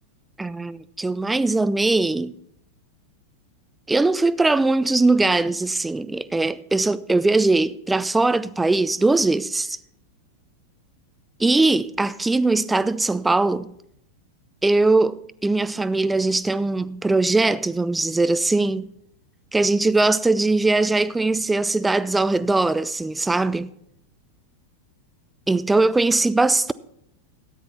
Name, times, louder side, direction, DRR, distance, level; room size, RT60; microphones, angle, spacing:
voice 1, 0.4-2.3 3.9-9.8 11.4-13.7 14.6-18.9 19.5-23.7 25.5-26.7, right 2 dB, 10° right, 0.4 m, -20 dB
13.5 x 9.6 x 4.3 m
figure-of-eight pair, 90°, 0 cm